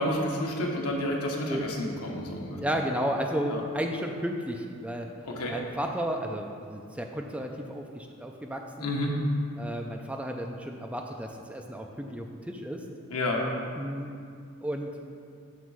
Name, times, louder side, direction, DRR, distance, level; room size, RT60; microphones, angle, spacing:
voice 1, 0.0-2.6 3.5-3.6 5.2-5.6 8.8-9.2 13.1-13.5, left 1 dB, 80° left, -1 dB, 1.0 m, -30 dB
voice 2, 2.6-5.1 5.5-8.9 9.6-12.9 13.8-14.1 14.6-15.1, equal, 5° right, 2 dB, 0.4 m, -33 dB
7.4 x 3.1 x 6.1 m, 2.3 s
head